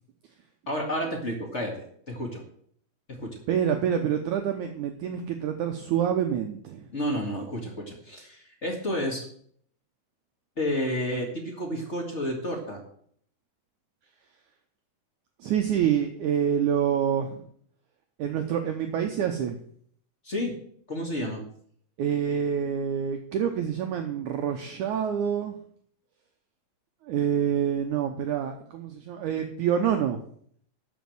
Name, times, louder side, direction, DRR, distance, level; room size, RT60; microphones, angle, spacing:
voice 1, 0.7-2.4 3.1-3.4 6.9-9.2 10.6-12.8 20.2-20.5 20.9-21.4, equal, 40° left, 1 dB, 1.0 m, -31 dB
voice 2, 3.5-6.9 15.4-17.4 18.2-19.6 22.0-25.6 27.1-30.2, right 8 dB, 80° right, 5 dB, 1.8 m, -27 dB
12.5 x 5.3 x 7.7 m, 0.62 s
omnidirectional pair, 4.5 m